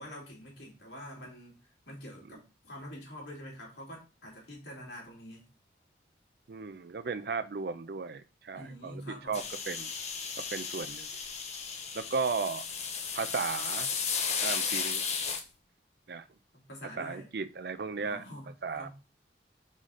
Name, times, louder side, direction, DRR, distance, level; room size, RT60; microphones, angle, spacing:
voice 1, 0.0-5.4 8.5-9.5 16.5-17.3 18.0-18.9, equal, 80° left, -2 dB, 2.7 m, -46 dB
voice 2, 6.5-9.0 9.3-9.9 10.5-11.1 11.9-12.6 13.1-13.9 14.4-15.0 16.1-16.3 17.0-18.2 18.6-18.9, right 4 dB, 60° right, 11 dB, 0.4 m, -35 dB
sound 1, 9.3-15.4, left 6 dB, 40° left, 0.8 m, -34 dB
4.9 x 3.8 x 5.6 m, 0.30 s
head